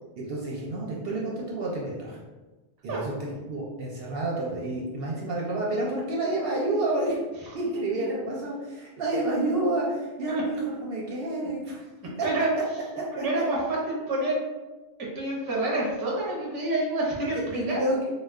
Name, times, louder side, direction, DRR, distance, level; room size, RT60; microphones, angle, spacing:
voice 1, 0.2-2.2 2.8-7.2 7.5-11.9 12.2-12.3 12.9-13.4 17.3-18.1, right 2 dB, 65° right, -3 dB, 0.7 m, -29 dB
voice 2, 13.1-13.6 13.9-14.4 15.1-17.8, right 2 dB, 25° right, -4 dB, 0.5 m, -28 dB
2.2 x 2.1 x 3.4 m, 1.2 s
omnidirectional pair, 1.2 m